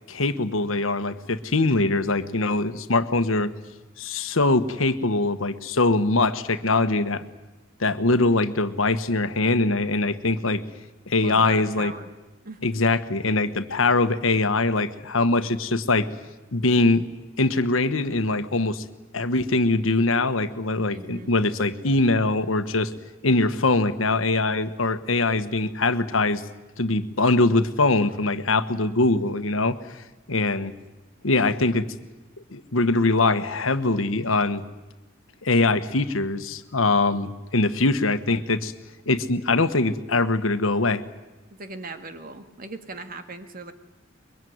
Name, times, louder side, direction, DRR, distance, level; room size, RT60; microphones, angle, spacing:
voice 1, 0.1-3.5 4.0-7.2 7.8-10.6 11.1-11.9 12.6-16.1 16.5-17.1 17.4-18.8 19.1-22.9 23.2-26.4 26.8-29.8 30.3-30.7 31.2-31.9 32.5-34.6 35.4-38.7 39.1-41.0, left 2 dB, 85° left, 11 dB, 1.3 m, -22 dB
voice 2, 11.2-12.1 12.4-12.6 20.8-21.3 41.5-43.7, right 2 dB, 45° right, 8 dB, 2.0 m, -38 dB
23.5 x 23.0 x 9.5 m, 1.1 s
head